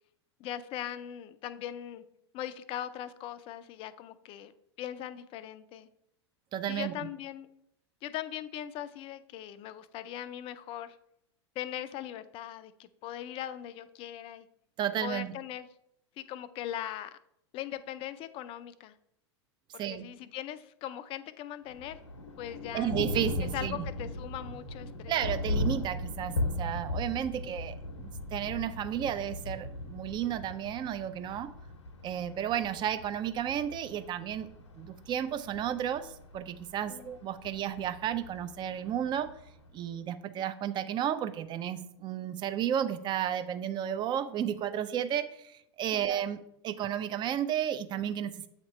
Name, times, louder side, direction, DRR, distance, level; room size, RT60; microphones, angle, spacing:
voice 1, 0.4-2.0 2.3-4.5 4.8-5.9 6.7-7.5 8.0-10.9 11.6-14.5 15.0-15.7 16.2-17.2 17.5-18.9 19.7-22.0 22.4-23.0 23.4-25.2 27.3-27.5 36.9-37.2 45.9-46.1, left 11 dB, 40° left, 13 dB, 0.4 m, -40 dB
voice 2, 6.5-6.9 14.8-15.3 19.8-20.0 22.7-23.8 25.1-31.5 32.0-34.5 34.8-39.3 39.7-46.4 46.6-48.5, right 10 dB, 30° right, 11 dB, 0.5 m, -33 dB
Thunder, 21.7-39.7, left 1 dB, 85° left, 0.8 m, -38 dB
7.9 x 2.9 x 4.3 m, 0.76 s
hypercardioid pair, 95°, 15 cm